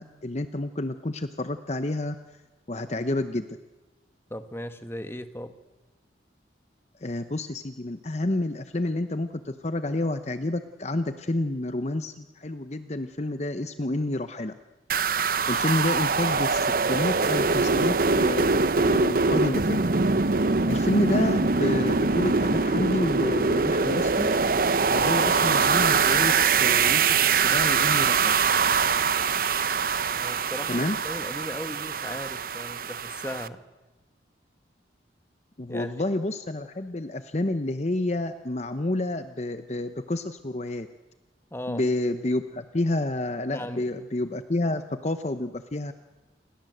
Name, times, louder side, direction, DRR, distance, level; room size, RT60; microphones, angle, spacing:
voice 1, 0.0-2.2 2.7-3.5 7.0-14.5 15.5-19.8 20.7-24.3 24.9-28.3 30.7-31.0 35.6-40.9 41.7-45.9, left 2 dB, 35° left, 10 dB, 0.9 m, -29 dB
voice 2, 4.3-5.5 24.9-25.2 30.1-33.6 35.7-35.9 41.5-41.8 43.5-43.9, left 1 dB, 15° left, 9 dB, 1.5 m, -37 dB
sound 1, 14.9-33.5, right 4 dB, 50° right, 0.9 m, -23 dB
29.5 x 22.0 x 7.9 m, 1.2 s
head